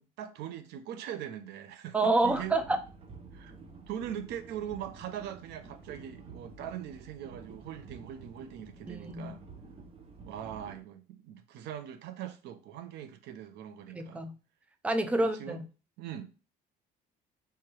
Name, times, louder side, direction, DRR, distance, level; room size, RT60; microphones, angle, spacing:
voice 1, 0.0-2.6 3.3-3.6 3.9-9.4 10.2-14.3 15.2-15.6 16.0-16.3, right 10 dB, 80° right, 0.6 m, -41 dB
voice 2, 1.9-2.8 8.9-9.4 14.0-14.3 14.8-15.6, right 2 dB, 5° right, 0.5 m, -28 dB
sound 1, 2.2-10.8, right 4 dB, 35° right, 0.9 m, -50 dB
3.5 x 3.1 x 4.6 m
cardioid pair, 110°, 17 cm